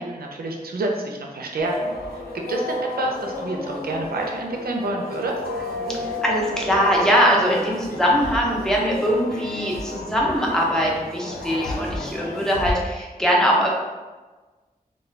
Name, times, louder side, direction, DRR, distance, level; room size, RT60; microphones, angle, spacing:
voice 1, 0.0-2.2 2.5-5.4, right 2 dB, 80° right, 1 dB, 0.5 m, -28 dB
sound 1, 1.6-12.7, left 1 dB, 80° left, 0.5 m, -32 dB
voice 2, 6.2-13.7, equal, 5° left, -3 dB, 0.6 m, -21 dB
2.4 x 2.3 x 3.2 m, 1.3 s
wide cardioid pair, 95°, 15 cm